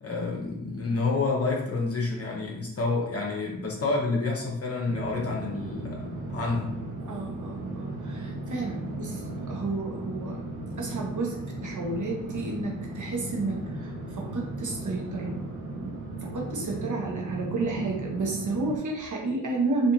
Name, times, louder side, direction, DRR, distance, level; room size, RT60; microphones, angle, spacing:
voice 1, 0.0-6.8, left 3 dB, 30° left, -2 dB, 0.8 m, -29 dB
sound 1, 4.9-18.8, right 2 dB, 80° right, 0.7 m, -36 dB
voice 2, 7.0-10.4 10.8-15.4 15.7-19.9, right 3 dB, 40° right, 0 dB, 1.0 m, -32 dB
2.5 x 2.4 x 2.9 m, 0.86 s
supercardioid pair, 40°, 45 cm